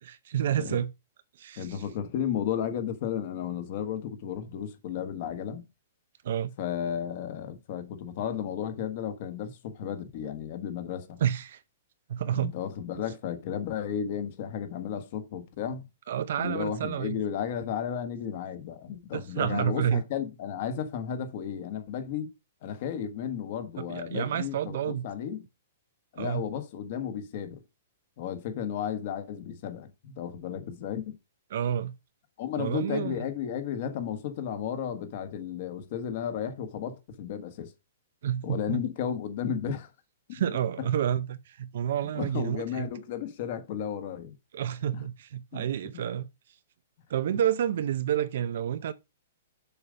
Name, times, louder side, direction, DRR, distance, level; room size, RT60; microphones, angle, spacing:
voice 1, 0.0-0.9 1.4-1.8 6.2-6.5 11.2-11.6 12.1-12.5 16.1-17.2 19.1-20.0 23.9-25.0 26.2-26.4 31.5-31.9 32.6-33.2 38.2-38.8 40.3-42.9 44.5-46.3 47.1-48.9, right 10 dB, 50° right, 0.6 m, -29 dB
voice 2, 1.6-5.6 6.6-11.2 12.3-15.9 16.4-22.3 22.6-25.4 26.1-27.5 28.2-31.2 32.4-37.7 38.4-39.9 40.3-40.4 40.8-40.9 42.1-44.4 44.9-45.0 45.5-45.6 45.9-46.0, left 8 dB, 35° left, 1.2 m, -33 dB
7.1 x 5.0 x 5.0 m
hypercardioid pair, 180°, 0 cm